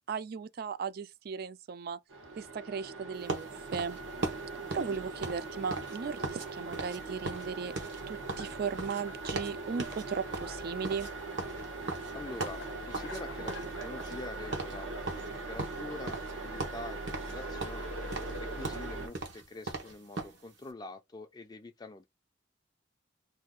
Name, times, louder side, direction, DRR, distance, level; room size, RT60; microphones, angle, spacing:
voice 1, 0.0-2.0 2.4-4.0 4.7-7.7 8.1-11.1, right 6 dB, 50° right, 0.3 m, -37 dB
sound 1, 2.1-19.1, right 3 dB, 90° right, 1.1 m, -41 dB
sound 2, 3.3-6.5 6.7-7.0 7.2-9.5 9.8-10.0 10.3-13.2 13.5-14.3 14.5-14.8 15.1-16.3 16.6-17.3 17.6-20.4, right 3 dB, 70° right, 1.0 m, -38 dB
sound 3, 8.2-9.4 9.7-10.7 11.0-16.3 16.6-19.9, left 3 dB, 75° left, 0.5 m, -51 dB
voice 2, 12.1-17.9 18.4-22.1, left 2 dB, 20° left, 0.4 m, -45 dB
2.8 x 2.3 x 3.6 m
head